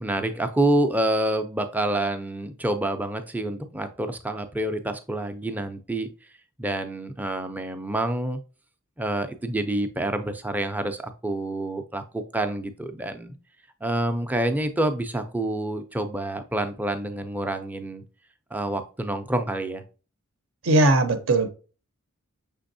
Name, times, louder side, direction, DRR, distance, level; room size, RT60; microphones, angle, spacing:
voice 1, 0.0-6.1 6.6-8.4 9.0-13.3 13.8-18.0 18.5-19.8, right 1 dB, 5° right, 0.4 m, -27 dB
voice 2, 20.6-21.5, right 2 dB, 60° right, 0.6 m, -19 dB
5.9 x 3.4 x 2.6 m
head